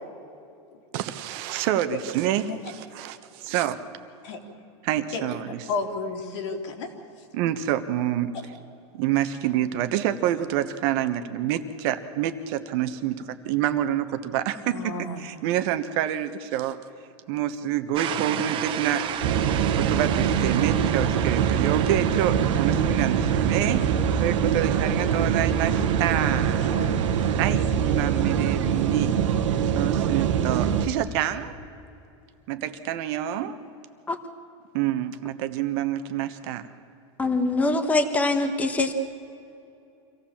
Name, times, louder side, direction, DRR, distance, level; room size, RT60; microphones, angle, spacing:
voice 1, 0.9-3.8 4.8-5.6 7.3-8.3 8.9-16.8 17.3-19.1 19.7-23.9 24.2-26.6 27.4-29.2 29.7-31.6 32.5-33.6 34.7-36.7, right 11 dB, 55° right, 10 dB, 1.2 m, -27 dB
voice 2, 5.7-6.9 14.7-15.2 26.6-27.0, left 4 dB, 75° left, 2 dB, 3.1 m, -32 dB
sound 1, 18.0-27.5, right 10 dB, 35° right, 1.0 m, -34 dB
sound 2, 19.2-30.9, right 8 dB, 80° right, 1.5 m, -23 dB
voice 3, 37.2-38.9, left 2 dB, 10° left, 7 dB, 1.3 m, -23 dB
25.5 x 15.5 x 7.3 m, 2.7 s
supercardioid pair, 140°, 15 cm